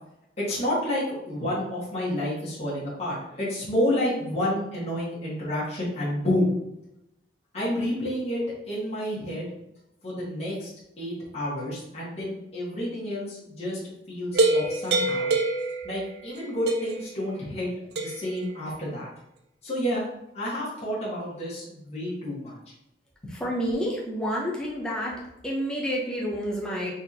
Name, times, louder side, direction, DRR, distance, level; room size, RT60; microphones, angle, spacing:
voice 1, 0.4-6.5 7.5-8.4 8.7-9.5 10.0-10.7 11.0-13.8 14.1-15.3 15.8-19.1 19.6-20.0 20.3-22.6, left 1 dB, 35° left, -8 dB, 1.4 m, -29 dB
sound 1, 14.3-16.4 16.7-17.1 17.9-18.4, right 2 dB, 65° right, 0.5 m, -25 dB
voice 2, 23.3-25.2 25.4-26.9, equal, 5° left, -4 dB, 0.7 m, -29 dB
4.0 x 4.0 x 2.8 m, 0.85 s
head